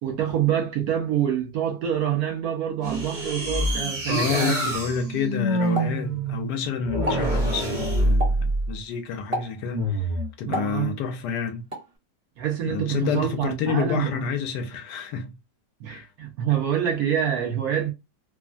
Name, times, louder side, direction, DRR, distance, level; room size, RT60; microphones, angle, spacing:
voice 1, 0.0-4.6 10.4-10.9 12.4-14.3 15.8-17.9, right 9 dB, 65° right, 1.0 m, -26 dB
sound 1, 2.8-8.8 9.7-10.3, right 1 dB, 90° right, 0.4 m, -26 dB
voice 2, 4.1-10.1 10.4-11.6 12.6-15.3 15.9-16.1, left 6 dB, 70° left, 1.1 m, -29 dB
Explosion, 5.8-6.6 6.9-7.4 8.2-8.6 9.3-9.7 10.5-11.2 11.7-12.0, equal, 30° right, 0.8 m, -32 dB
3.4 x 2.1 x 2.4 m
omnidirectional pair, 2.0 m